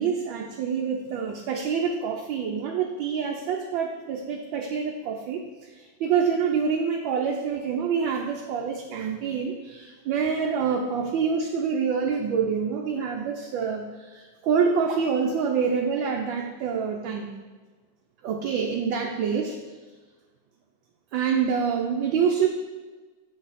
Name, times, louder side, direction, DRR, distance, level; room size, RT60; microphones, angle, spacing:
voice 1, 0.0-5.4 5.7-17.3 18.2-19.6 21.1-22.5, right 6 dB, 70° right, 0 dB, 1.4 m, -26 dB
6.7 x 6.5 x 4.1 m, 1.3 s
omnidirectional pair, 2.3 m